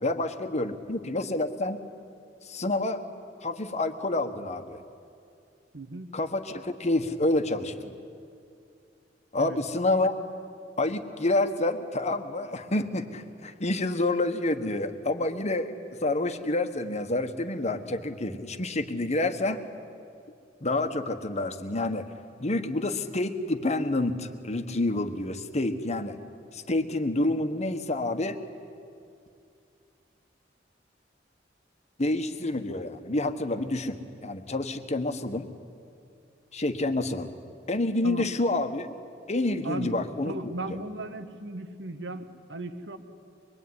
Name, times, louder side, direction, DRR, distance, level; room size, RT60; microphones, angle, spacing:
voice 1, 0.0-1.8 2.4-3.0 3.4-4.8 6.1-7.9 9.3-10.1 10.8-15.7 16.0-19.6 20.6-22.1 22.4-26.2 26.5-28.4 32.0-34.0 34.2-35.5 36.5-37.3 37.7-38.9 39.3-40.5, left 2 dB, 40° left, 8 dB, 1.4 m, -28 dB
voice 2, 5.7-6.2 9.4-9.6 38.0-38.2 39.6-40.0 40.2-43.0, right 2 dB, 70° right, 9 dB, 1.6 m, -36 dB
24.0 x 22.5 x 9.7 m, 2.4 s
head